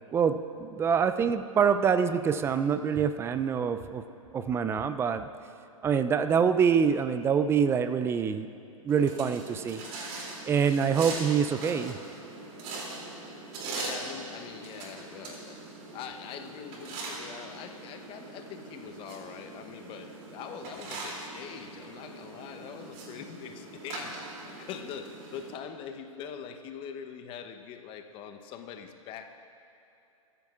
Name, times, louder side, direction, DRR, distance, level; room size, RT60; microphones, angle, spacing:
voice 1, 0.1-4.0 4.3-5.3 5.8-8.5 8.8-9.8 10.4-12.0, right 7 dB, 15° right, 10 dB, 0.4 m, -25 dB
sound 1, 8.9-25.5, right 3 dB, 40° right, 2.9 m, -41 dB
voice 2, 13.7-15.6 15.9-29.4, left 7 dB, 30° left, 6 dB, 0.9 m, -43 dB
21.5 x 14.0 x 2.5 m, 2.9 s
hypercardioid pair, 115°, 18 cm